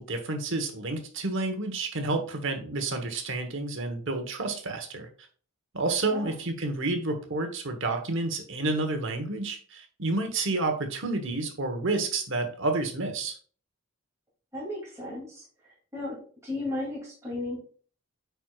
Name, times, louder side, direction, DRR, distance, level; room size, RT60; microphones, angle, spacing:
voice 1, 0.0-5.1 5.7-13.4, right 2 dB, 60° right, 5 dB, 1.1 m, -30 dB
voice 2, 14.5-16.2 16.4-17.6, left 2 dB, 15° right, -7 dB, 2.5 m, -35 dB
9.2 x 4.6 x 2.4 m, 0.42 s
head